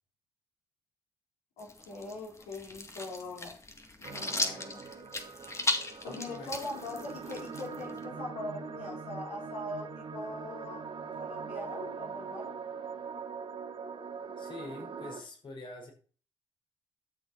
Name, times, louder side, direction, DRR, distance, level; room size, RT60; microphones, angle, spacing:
voice 1, 1.6-3.6 4.0-4.8 6.0-10.8 11.2-12.5, left 2 dB, 85° left, -4 dB, 4.3 m, -41 dB
sound 1, 1.6-8.0, left 2 dB, 25° left, 2.0 m, -37 dB
sound 2, 4.0-15.2, right 5 dB, 55° right, 2.1 m, -42 dB
voice 2, 6.0-6.6 14.4-15.9, left 2 dB, 50° left, 2 dB, 5.1 m, -45 dB
12.5 x 7.0 x 4.4 m, 0.40 s
supercardioid pair, 55°, 11 cm